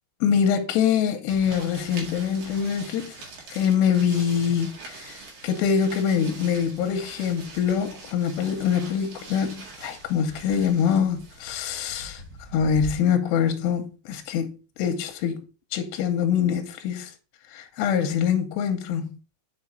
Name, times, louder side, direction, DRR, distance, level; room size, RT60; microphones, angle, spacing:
voice 1, 0.2-3.2 3.5-12.2 12.5-14.5 14.8-15.4 15.7-17.1 17.5-19.0, left 7 dB, 80° left, 2.8 m, -24 dB
sound 1, 1.3-12.9, right 3 dB, 55° right, 2.8 m, -43 dB
6.5 x 4.8 x 4.3 m
omnidirectional pair, 5.1 m